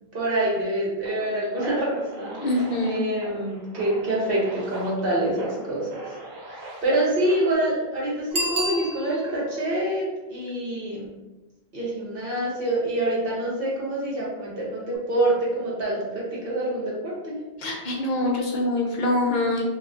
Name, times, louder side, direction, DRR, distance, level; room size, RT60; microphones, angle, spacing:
voice 1, 0.1-5.9 6.5-11.1 11.7-17.4, right 1 dB, 60° right, -5 dB, 1.3 m, -26 dB
sound 1, 1.0-7.5, right 1 dB, 75° right, 1.0 m, -39 dB
voice 2, 2.4-3.0 17.6-19.6, left 1 dB, 50° left, -1 dB, 0.8 m, -24 dB
Bicycle bell, 8.3-9.5 14.9-15.0, equal, 35° right, 0.4 m, -29 dB
2.7 x 2.3 x 3.8 m, 1.1 s
omnidirectional pair, 1.1 m